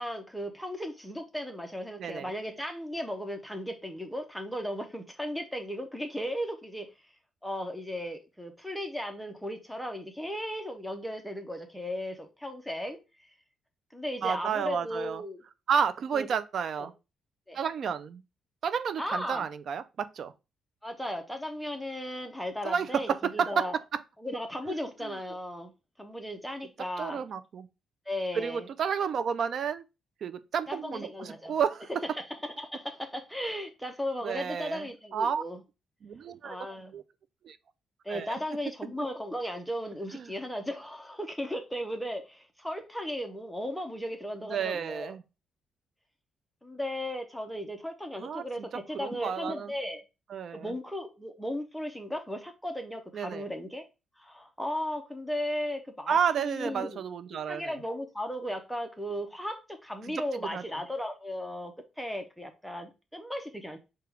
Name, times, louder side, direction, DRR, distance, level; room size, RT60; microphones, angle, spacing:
voice 1, 0.0-6.9 7.4-13.3 13.9-15.4 16.1-16.3 16.8-16.9 17.5-17.6 19.0-19.5 20.8-23.8 24.2-25.7 26.0-27.2 28.1-28.7 30.7-31.5 32.1-35.6 36.4-36.9 38.0-45.1 46.6-50.0 50.5-53.8 54.2-57.0 57.5-63.8, equal, ahead, 0.7 m, -36 dB
voice 2, 2.0-2.3 14.2-15.2 15.7-16.9 17.5-18.2 18.6-20.3 22.6-23.7 23.9-24.0 24.7-24.8 25.0-25.1 27.0-27.7 28.3-29.8 30.2-31.9 34.2-35.4 36.0-36.6 36.9-37.0 37.4-37.6 38.1-38.4 40.1-40.3 44.4-45.2 48.2-48.4 48.9-49.7 50.3-50.7 53.1-53.5 56.1-57.8 60.3-60.6, right 7 dB, 60° right, 0.4 m, -31 dB
4.8 x 2.3 x 4.6 m
cardioid pair, 85°, 0 cm